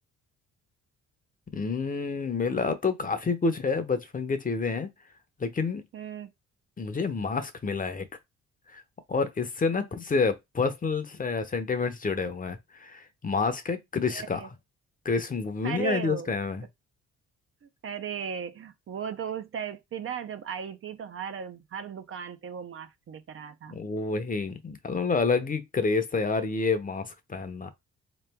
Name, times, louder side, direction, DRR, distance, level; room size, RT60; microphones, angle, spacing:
voice 1, 1.5-4.9 5.4-5.8 6.8-8.1 8.7-8.8 9.1-14.4 15.0-16.6 23.7-27.7, left 4 dB, 30° left, 0.7 m, -28 dB
voice 2, 5.9-6.3 9.7-9.8 14.1-14.5 15.6-16.3 17.8-23.8, right 7 dB, 45° right, 0.6 m, -36 dB
3.6 x 3.0 x 3.4 m
cardioid pair, 85°, 30 cm